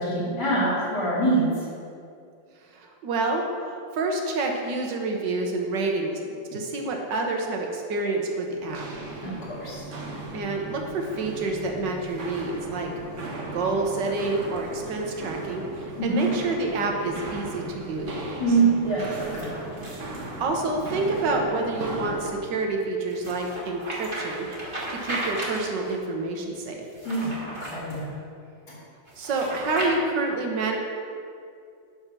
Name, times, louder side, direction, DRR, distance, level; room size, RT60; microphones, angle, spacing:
voice 1, 0.0-1.5 9.2-9.8 16.0-16.3 18.4-19.5 27.0-28.2 28.7-28.8, right 3 dB, 60° left, -9 dB, 2.8 m, -25 dB
voice 2, 2.7-6.2 6.5-8.9 10.3-12.9 13.5-18.2 20.4-24.5 24.9-26.8 29.2-30.8, right 3 dB, 70° right, 2 dB, 1.6 m, -28 dB
Walk footsteps, 8.6-22.4, right 2 dB, 50° right, 1.2 m, -37 dB
sound 1, 13.8-14.8 17.1-17.4 19.0-21.0 23.1-26.0 26.8-28.1 29.0-29.9, right 1 dB, 30° right, 1.6 m, -36 dB
9.9 x 4.4 x 6.1 m, 2.4 s
omnidirectional pair, 2.0 m